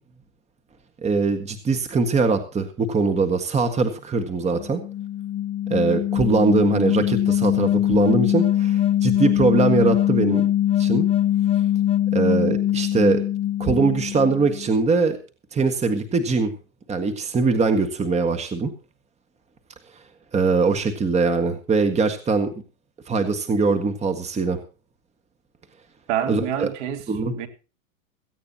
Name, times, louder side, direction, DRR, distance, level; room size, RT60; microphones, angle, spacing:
voice 1, 1.0-4.8 5.7-10.5 10.8-11.0 12.1-13.2 13.6-15.2 15.5-16.5 16.9-18.7 20.3-22.5 23.1-24.6 26.3-26.7 27.1-27.3, right 4 dB, 15° right, 1.7 m, -22 dB
sound 1, 4.6-14.7, left 12 dB, 15° left, 0.6 m, -22 dB
voice 2, 26.1-27.1 27.3-27.5, right 10 dB, 55° right, 2.7 m, -27 dB
17.0 x 15.5 x 2.9 m
hypercardioid pair, 125°, 43 cm